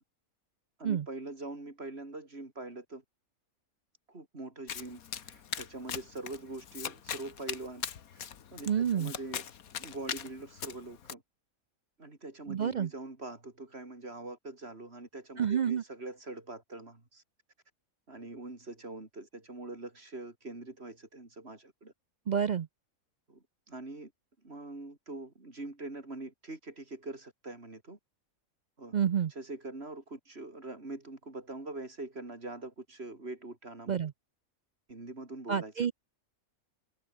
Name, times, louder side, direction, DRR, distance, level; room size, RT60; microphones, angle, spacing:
voice 1, 0.8-3.0 4.1-7.8 8.1-9.5 9.8-11.2 12.0-17.2 18.1-21.9 23.3-24.1 24.4-28.0 28.8-29.0 29.4-34.0 34.9-35.7, right 2 dB, 45° right, 4.0 m, -43 dB
Domestic sounds home sounds, 4.7-11.1, left 8 dB, 85° left, 1.7 m, -41 dB
voice 2, 8.7-9.1 12.5-12.9 15.4-15.8 22.3-22.7 28.9-29.3 33.9-34.1 35.5-35.9, right 8 dB, 80° right, 0.4 m, -29 dB
omnidirectional pair, 1.5 m